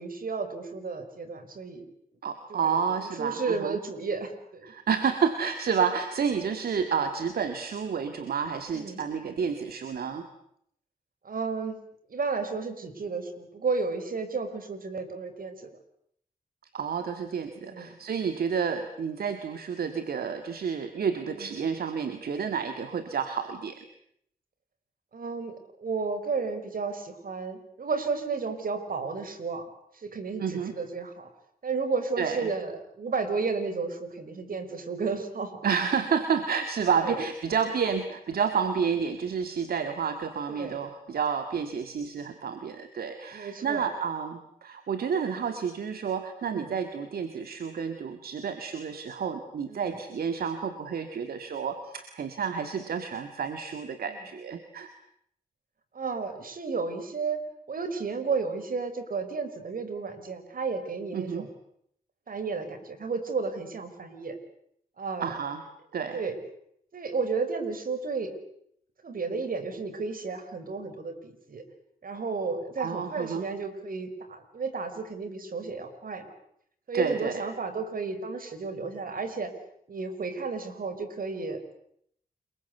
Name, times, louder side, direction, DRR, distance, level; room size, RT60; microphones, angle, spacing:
voice 1, 0.0-1.9 2.5-4.7 8.7-9.0 11.2-11.8 12.1-15.6 17.6-17.9 21.2-21.5 25.1-29.6 29.9-31.3 31.6-35.6 37.0-37.2 40.5-40.8 43.3-43.8 46.4-46.7 49.7-50.0 54.1-54.2 55.9-57.4 57.7-61.5 62.3-64.4 65.0-65.3 66.1-66.4 66.9-68.3 69.0-71.6 72.0-76.3 76.9-79.5 79.9-81.6, right 4 dB, 70° right, 9 dB, 5.2 m, -32 dB
voice 2, 2.2-3.8 4.6-10.3 16.7-23.8 30.4-30.7 32.2-32.5 35.6-54.9 61.1-61.5 65.2-65.6 65.9-66.2 72.8-73.4 76.9-77.4, right 6 dB, 85° right, 8 dB, 2.1 m, -30 dB
29.5 x 22.5 x 8.2 m, 0.71 s
cardioid pair, 50°, 15 cm